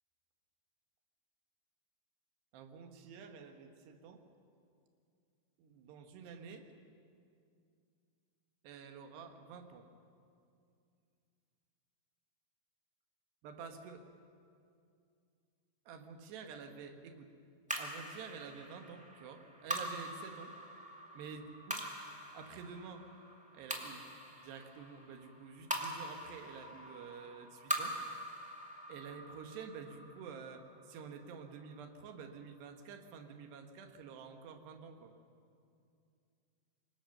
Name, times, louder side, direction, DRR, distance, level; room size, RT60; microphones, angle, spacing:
voice 1, 2.5-4.2 5.6-6.6 8.6-9.9 13.4-14.0 15.9-17.3 17.8-20.5 21.2-21.8 22.3-23.1 23.5-24.0 24.4-28.0 28.9-35.1, right 6 dB, 85° right, 6 dB, 3.6 m, -49 dB
sound 1, 17.7-32.2, right 1 dB, 5° right, 0.8 m, -44 dB
26.0 x 23.5 x 6.6 m, 2.4 s
omnidirectional pair, 4.7 m